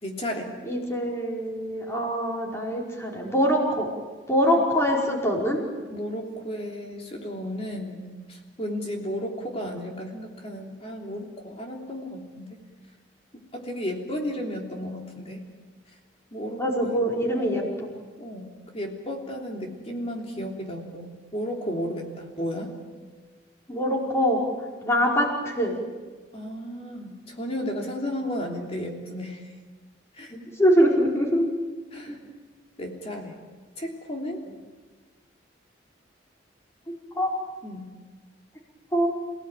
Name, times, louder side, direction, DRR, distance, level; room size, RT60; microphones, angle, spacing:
voice 1, 0.0-0.5 5.9-12.5 13.5-15.4 16.3-17.0 17.3-17.7 18.2-18.5 18.7-22.7 26.3-29.5 30.1-30.3 31.9-32.2 32.8-33.4 33.7-34.4 37.6-37.9, equal, 30° left, 1 dB, 3.2 m, -33 dB
voice 2, 0.6-3.9 4.3-5.6 16.6-17.9 23.7-24.4 24.8-25.7 30.3-31.4 32.1-32.2 37.1-37.3 38.9-39.1, equal, 15° left, -2 dB, 5.0 m, -23 dB
28.5 x 18.0 x 9.1 m, 1.4 s
head